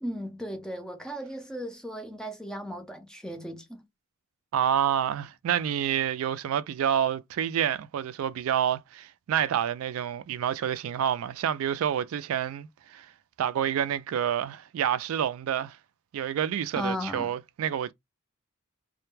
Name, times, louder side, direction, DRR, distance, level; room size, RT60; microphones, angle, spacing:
voice 1, 0.0-3.8 16.8-17.3, equal, 5° left, 0.4 m, -36 dB
voice 2, 4.5-13.1 13.4-15.8 16.1-17.9, right 9 dB, 80° right, 0.3 m, -28 dB
2.1 x 2.1 x 3.0 m
head